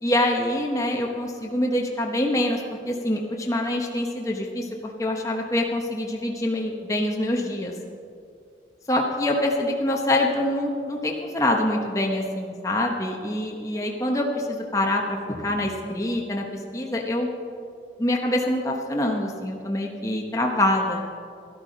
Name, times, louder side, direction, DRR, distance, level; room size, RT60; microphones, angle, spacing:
voice 1, 0.0-7.7 8.9-17.3 18.0-21.0, left 1 dB, 15° left, 0 dB, 0.9 m, -25 dB
12.5 x 12.0 x 5.1 m, 2.4 s
head